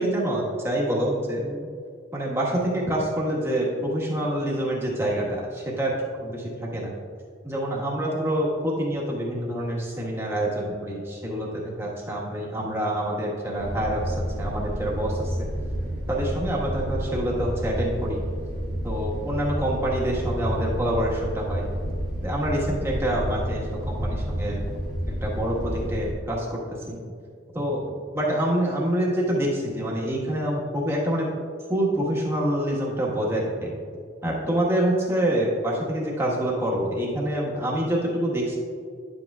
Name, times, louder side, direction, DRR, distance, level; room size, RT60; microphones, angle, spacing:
voice 1, 0.0-1.7 2.1-5.9 6.2-6.9 7.4-15.5 16.1-18.2 18.8-21.6 22.2-24.6 25.2-26.6 26.9-27.0 27.5-31.3 31.7-33.7 34.2-38.6, right 1 dB, 15° right, -4 dB, 1.4 m, -26 dB
sound 1, 13.6-26.1, equal, 20° left, 2.0 m, -30 dB
10.5 x 7.9 x 2.4 m, 2.2 s
head